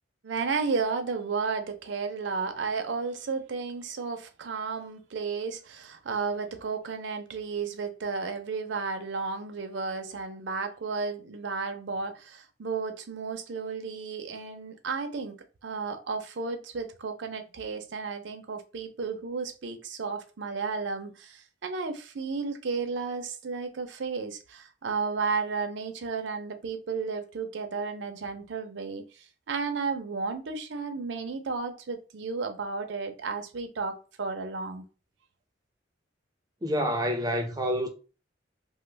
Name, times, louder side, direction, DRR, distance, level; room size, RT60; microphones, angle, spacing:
voice 1, 0.2-29.0 29.5-34.8, right 4 dB, 65° right, 0.5 m, -33 dB
voice 2, 36.6-37.9, equal, 20° right, 0.5 m, -27 dB
3.0 x 2.0 x 3.2 m
head